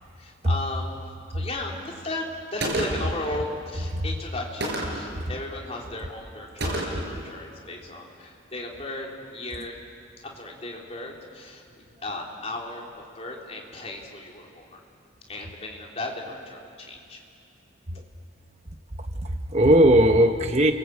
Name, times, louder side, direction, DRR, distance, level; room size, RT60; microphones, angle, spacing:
voice 1, 0.2-0.9 1.3-9.8 10.2-14.8 15.3-17.2, left 2 dB, 30° left, -1 dB, 3.6 m, -36 dB
Gunshot gunfire, 2.6-3.2 4.6-5.1 6.6-7.2, right 1 dB, 55° right, 5.7 m, -29 dB
voice 2, 19.2-20.7, right 1 dB, 30° right, 6 dB, 0.9 m, -19 dB
30.0 x 23.5 x 8.3 m, 2.5 s
head